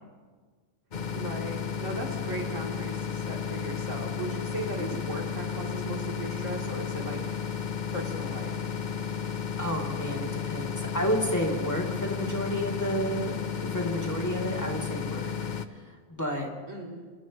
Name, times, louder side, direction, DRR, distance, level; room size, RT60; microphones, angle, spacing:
sound 1, 0.9-15.7, left 7 dB, 45° left, 0.9 m, -33 dB
voice 1, 1.1-7.2 7.9-8.6 16.7-17.0, right 1 dB, 85° right, -2 dB, 3.8 m, -37 dB
voice 2, 9.6-13.4 13.6-15.3 15.7-16.5, equal, 15° left, -2 dB, 3.0 m, -31 dB
29.5 x 27.5 x 3.2 m, 1.5 s
omnidirectional pair, 1.2 m